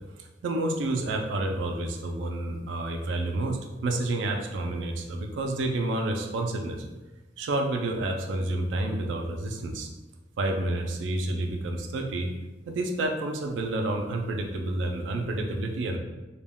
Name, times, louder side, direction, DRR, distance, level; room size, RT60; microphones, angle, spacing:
voice 1, 0.2-6.9 7.4-9.9 10.4-12.3 12.7-16.0, right 2 dB, 75° right, 3 dB, 0.3 m, -29 dB
2.2 x 2.2 x 3.4 m, 1.1 s
head